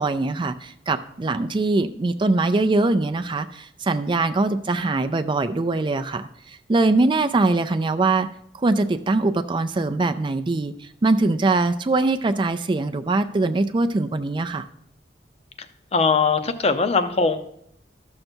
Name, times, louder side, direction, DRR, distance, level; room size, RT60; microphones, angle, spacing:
voice 1, 0.0-6.3 6.7-8.3 8.6-10.7 11.0-14.6, right 2 dB, 30° right, 9 dB, 0.4 m, -22 dB
voice 2, 15.9-17.4, left 4 dB, 35° left, 9 dB, 0.7 m, -20 dB
13.0 x 6.5 x 4.5 m, 0.72 s
head